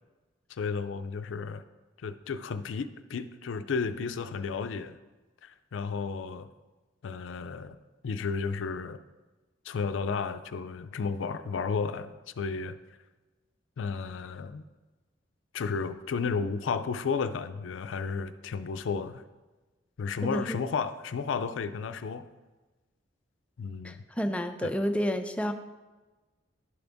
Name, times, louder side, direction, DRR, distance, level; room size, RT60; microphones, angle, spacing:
voice 1, 0.5-1.6 2.0-5.0 5.4-6.5 7.0-7.8 8.0-9.0 9.6-12.8 13.8-14.6 15.5-19.2 20.0-22.3 23.6-24.0 24.6-24.7, left 5 dB, 75° left, 11 dB, 0.4 m, -33 dB
voice 2, 20.2-20.6 23.8-25.5, equal, 5° left, 6 dB, 0.4 m, -30 dB
11.5 x 3.9 x 3.5 m, 1.2 s
head